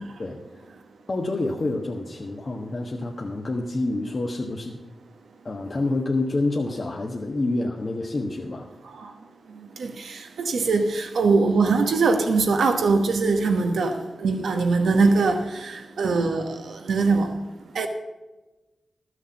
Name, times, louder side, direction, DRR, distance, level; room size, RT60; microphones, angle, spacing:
voice 1, 1.1-4.8 5.4-8.7, left 2 dB, 50° left, 1.3 m, -27 dB
voice 2, 9.8-16.5 16.9-17.3 17.7-17.9, right 4 dB, 85° right, 1.2 m, -22 dB
13.0 x 6.5 x 7.5 m
cardioid pair, 45°, 0 cm